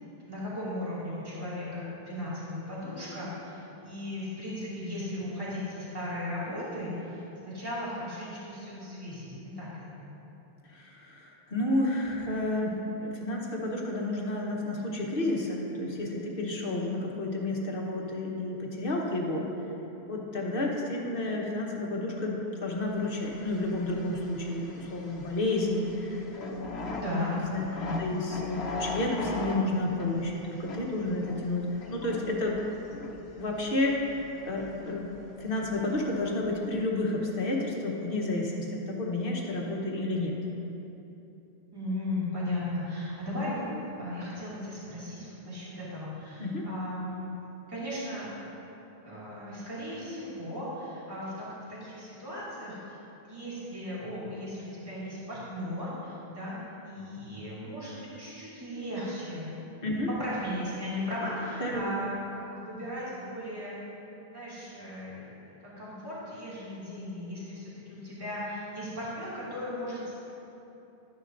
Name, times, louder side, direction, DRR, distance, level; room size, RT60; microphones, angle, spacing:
voice 1, 0.3-9.9 26.9-27.3 27.7-28.0 41.7-43.6 44.0-47.3 47.7-48.3 49.0-53.0 53.3-56.6 56.8-59.5 59.9-62.2 62.5-63.8 64.3-65.1 65.6-70.1, left 1 dB, 20° right, -10 dB, 2.3 m, -36 dB
voice 2, 10.6-19.5 20.1-26.9 27.3-27.7 28.0-32.6 32.9-33.1 33.4-35.1 35.4-40.4 46.4-46.7 59.8-60.1 61.6-61.8, left 2 dB, 60° left, -2 dB, 1.4 m, -31 dB
sound 1, 22.9-36.8, left 2 dB, 75° left, 1.2 m, -41 dB
12.5 x 10.0 x 2.6 m, 3.0 s
omnidirectional pair, 1.1 m